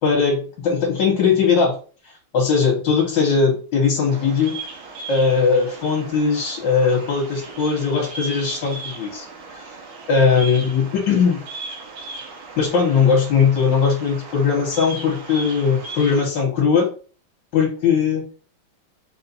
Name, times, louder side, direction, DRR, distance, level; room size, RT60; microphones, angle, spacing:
voice 1, 0.0-1.8 2.3-4.6 5.1-9.2 9.5-9.6 10.1-11.4 12.6-16.9 17.5-18.2, left 5 dB, 60° left, -2 dB, 1.7 m, -19 dB
Bird vocalization bird call bird song, 4.1-16.2, right 3 dB, 70° right, 1.7 m, -37 dB
4.2 x 2.5 x 4.0 m, 0.39 s
omnidirectional pair, 2.4 m